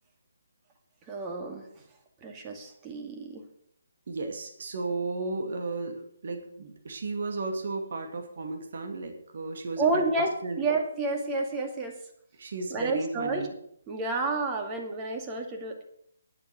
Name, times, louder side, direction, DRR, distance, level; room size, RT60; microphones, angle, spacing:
voice 1, 1.1-1.6 2.2-3.4 9.8-12.0 12.7-13.5 13.9-15.8, right 3 dB, 20° right, 3 dB, 2.3 m, -30 dB
voice 2, 4.1-10.6 12.4-13.5, right 3 dB, 55° right, 4 dB, 2.3 m, -34 dB
10.0 x 8.4 x 8.1 m, 0.71 s
figure-of-eight pair, 140°, 0 cm